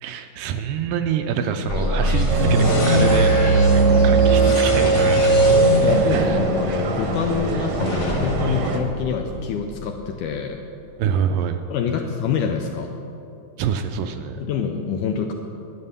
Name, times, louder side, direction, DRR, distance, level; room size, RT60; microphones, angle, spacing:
voice 1, 0.0-5.4 6.0-6.4 11.0-11.6 13.6-14.4, right 8 dB, 80° right, 8 dB, 2.0 m, -26 dB
sound 1, 1.3-6.6, equal, 30° left, 0.8 m, -37 dB
sound 2, 1.7-9.6, right 2 dB, 60° left, 0.8 m, -21 dB
sound 3, 2.3-8.8, right 3 dB, 65° right, 1.6 m, -21 dB
voice 2, 5.8-10.6 11.7-12.9 14.4-15.3, left 7 dB, 80° left, 4 dB, 1.8 m, -26 dB
11.0 x 9.7 x 6.7 m, 2.8 s
omnidirectional pair, 4.2 m